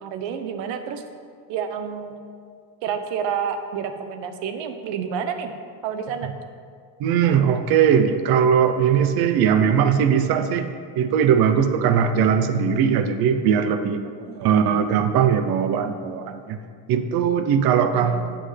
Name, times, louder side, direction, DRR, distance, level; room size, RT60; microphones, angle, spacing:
voice 1, 0.0-1.0 1.5-2.3 2.8-5.5 5.8-6.3 14.2-14.6 17.9-18.4, right 7 dB, 75° right, 7 dB, 1.0 m, -29 dB
voice 2, 7.0-10.7 11.0-14.0 14.4-16.6 16.9-18.2, right 7 dB, 55° right, 8 dB, 0.7 m, -19 dB
17.5 x 6.2 x 3.3 m, 2.1 s
cardioid pair, 160°, 44 cm